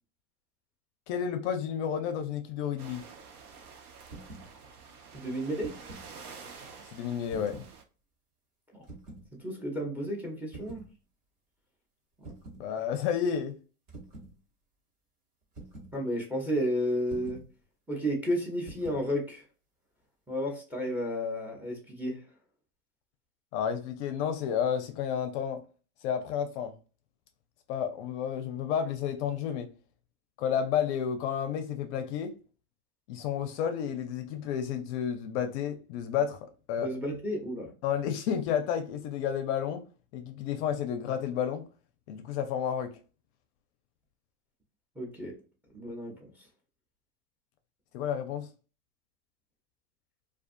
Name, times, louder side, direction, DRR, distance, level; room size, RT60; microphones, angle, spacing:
voice 1, 1.1-3.0 6.9-7.6 12.6-13.6 23.5-25.6 26.0-26.7 27.7-29.7 30.4-32.3 33.1-36.9 37.8-39.8 40.1-41.7 42.1-42.9 47.9-48.5, left 8 dB, 55° left, 0.5 m, -31 dB
sound 1, 2.8-7.8, right 5 dB, 85° right, 0.7 m, -49 dB
sound 2, 4.0-4.5 5.4-6.1 7.3-7.8 8.8-9.3 10.5-10.9 12.2-12.7 13.9-14.3 15.6-16.0 17.1-17.5 18.7-19.1, right 2 dB, 45° right, 1.1 m, -46 dB
voice 2, 5.1-5.7 8.7-8.8 9.4-10.8 15.9-17.4 17.9-19.4 20.3-22.2 36.8-37.7 45.0-45.3 45.7-46.3, equal, 5° right, 0.5 m, -32 dB
2.4 x 2.4 x 2.5 m
hypercardioid pair, 110°, 43 cm